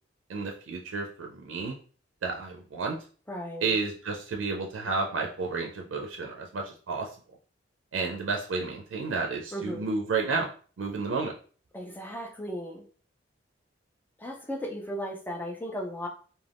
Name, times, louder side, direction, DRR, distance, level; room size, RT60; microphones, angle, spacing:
voice 1, 0.3-1.8 2.2-3.0 3.6-7.1 7.9-10.5 10.8-11.3, right 4 dB, 80° right, 2 dB, 0.4 m, -31 dB
voice 2, 3.3-3.8 9.5-9.8 11.7-12.8 14.2-16.1, equal, 10° left, 1 dB, 0.4 m, -36 dB
2.4 x 2.2 x 3.3 m, 0.42 s
head